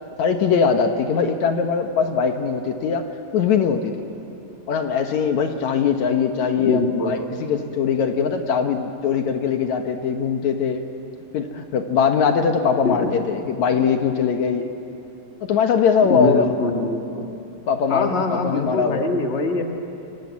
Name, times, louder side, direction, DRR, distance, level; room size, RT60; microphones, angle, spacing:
voice 1, 0.2-3.1 3.3-4.0 4.7-10.9 11.3-14.7 15.4-16.5 17.7-19.2, left 6 dB, 65° left, 5 dB, 2.3 m, -21 dB
voice 2, 6.7-7.1 12.8-13.1 16.1-17.3 17.9-19.6, left 3 dB, 25° left, 2 dB, 1.9 m, -23 dB
28.5 x 24.5 x 8.4 m, 2.8 s
omnidirectional pair, 3.7 m